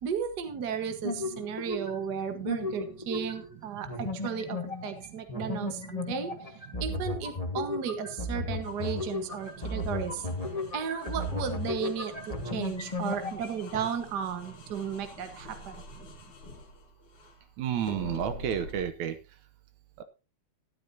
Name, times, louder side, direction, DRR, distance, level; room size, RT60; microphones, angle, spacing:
voice 1, 0.0-6.5 6.8-10.3 10.7-15.8, right 7 dB, 45° right, 8 dB, 1.6 m, -34 dB
sound 1, 1.0-2.1 2.4-3.6 3.8-13.8, left 2 dB, 20° left, 0.9 m, -35 dB
sound 2, 8.6-17.4 17.8-18.8, left 3 dB, 50° left, 3.2 m, -47 dB
voice 2, 17.6-19.1, right 9 dB, 80° right, 10 dB, 2.2 m, -30 dB
13.5 x 12.5 x 2.8 m, 0.29 s
omnidirectional pair, 3.4 m